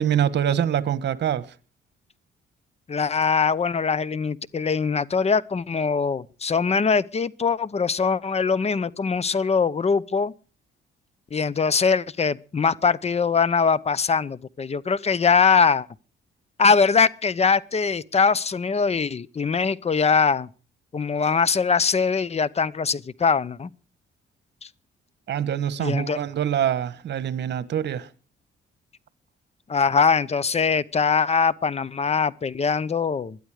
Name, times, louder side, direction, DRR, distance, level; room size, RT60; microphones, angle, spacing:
voice 1, 0.0-1.5 25.3-28.1, right 9 dB, 60° right, 1.4 m, -24 dB
voice 2, 2.9-10.3 11.3-15.9 16.6-20.5 20.9-23.7 24.6-24.7 25.8-26.2 29.7-33.4, left 5 dB, 30° left, 0.8 m, -22 dB
21.5 x 12.0 x 4.9 m
cardioid pair, 90°, 20 cm